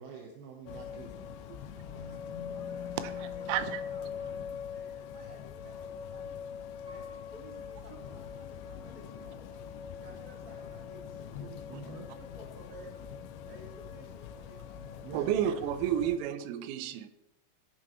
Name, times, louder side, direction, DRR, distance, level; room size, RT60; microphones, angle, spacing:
voice 1, 0.0-1.4 11.7-12.1 15.0-15.3, right 5 dB, 70° right, 2.4 m, -46 dB
sound 1, 0.7-16.2, left 7 dB, 80° left, 2.8 m, -42 dB
voice 2, 1.9-4.4 4.7-6.2 6.9-9.6 10.0-11.5 11.8-13.1 13.5-15.2, equal, 20° right, 3.5 m, -54 dB
voice 3, 3.0-3.8 7.9-8.0 11.4-11.6 15.1-17.1, right 10 dB, 90° right, 3.4 m, -32 dB
Piano, 6.9-8.8 9.4-9.5, left 4 dB, 5° left, 2.2 m, -58 dB
19.0 x 9.1 x 3.1 m
omnidirectional pair, 5.8 m